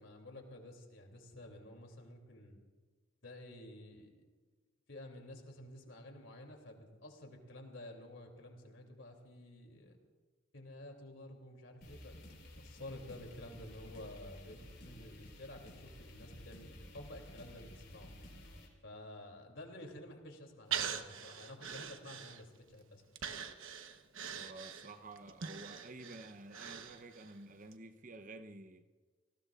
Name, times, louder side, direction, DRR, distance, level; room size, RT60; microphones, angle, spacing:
voice 1, 0.0-2.6 3.2-4.2 4.9-9.9 10.5-12.2 12.6-18.1 18.8-23.0, left 1 dB, 75° left, 2.8 m, -51 dB
sound 1, 11.8-18.7, left 1 dB, 50° left, 4.3 m, -53 dB
Breathing, 20.7-22.7 23.2-27.3 27.7-27.8, right 7 dB, 85° right, 1.0 m, -42 dB
voice 2, 24.4-28.9, right 2 dB, 40° right, 0.8 m, -51 dB
28.5 x 19.0 x 2.4 m
head